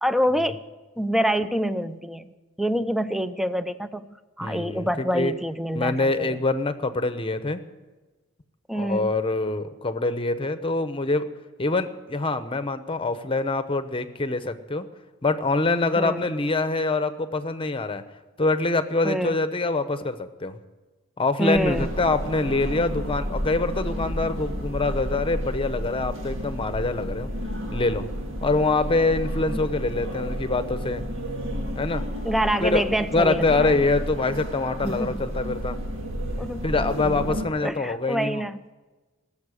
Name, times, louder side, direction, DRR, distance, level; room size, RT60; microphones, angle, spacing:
voice 1, 0.0-0.6 1.0-2.3 2.6-6.4 8.7-9.1 16.0-16.3 19.0-19.4 21.4-21.9 32.2-33.8 34.8-35.2 36.4-36.6 37.6-38.6, equal, ahead, 12 dB, 0.5 m, -26 dB
voice 2, 4.4-5.3 5.7-7.6 8.7-11.3 11.6-14.9 15.2-18.0 18.4-20.6 21.2-27.3 27.7-28.0 28.4-31.0 31.7-32.0 32.6-35.8 36.6-38.4, left 3 dB, 25° left, 10 dB, 0.9 m, -25 dB
sound 1, 21.5-37.5, equal, 65° right, 2.0 m, -31 dB
20.0 x 7.2 x 9.9 m, 1.2 s
head